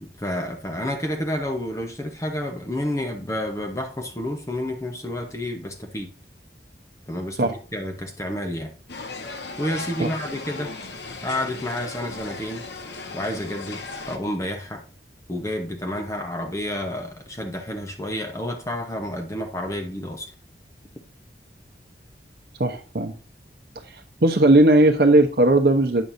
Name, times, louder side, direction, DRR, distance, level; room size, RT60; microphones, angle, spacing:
voice 1, 0.0-6.1 7.1-8.7 9.6-10.8 11.2-12.7 13.1-14.8 15.3-20.3, left 1 dB, 15° left, 0.9 m, -30 dB
sound 1, 8.9-14.2, left 3 dB, 85° left, 1.3 m, -36 dB
voice 2, 22.6-23.1 23.9-26.0, right 2 dB, 60° right, 0.8 m, -17 dB
9.1 x 6.5 x 2.7 m
head